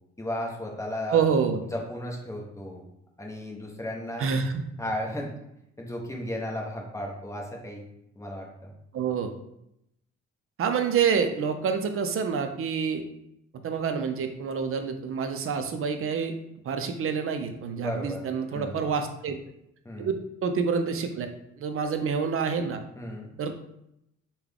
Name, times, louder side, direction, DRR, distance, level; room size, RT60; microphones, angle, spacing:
voice 1, 0.2-1.3 1.7-2.8 3.2-4.3 4.8-5.3 5.8-7.8 8.2-8.7 17.8-18.2 18.5-18.8 19.8-20.1 23.0-23.3, left 1 dB, 10° left, -1 dB, 0.8 m, -34 dB
voice 2, 1.1-1.6 4.2-4.6 8.9-9.4 10.6-13.0 13.6-16.3 16.6-19.4 20.0-20.1 20.4-21.3 21.6-22.8 23.4-23.6, right 6 dB, 45° right, 7 dB, 0.5 m, -27 dB
3.6 x 2.3 x 3.4 m, 0.80 s
cardioid pair, 90°, 30 cm